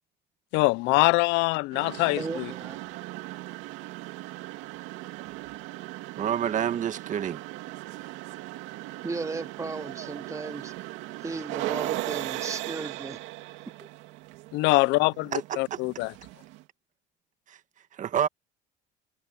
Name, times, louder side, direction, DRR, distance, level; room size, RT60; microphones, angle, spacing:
voice 1, 0.5-2.5 14.5-16.1, left 23 dB, 75° left, 0.6 m, -24 dB
sound 1, 1.7-16.6, right 19 dB, 75° right, 2.5 m, -38 dB
voice 2, 2.2-2.8 9.0-10.7 11.2-13.2 13.8-13.9, right 3 dB, 15° right, 2.4 m, -35 dB
voice 3, 6.2-7.4 15.3-15.8 17.5-17.6 18.0-18.3, right 9 dB, 40° right, 1.6 m, -28 dB
supercardioid pair, 110°, 19 cm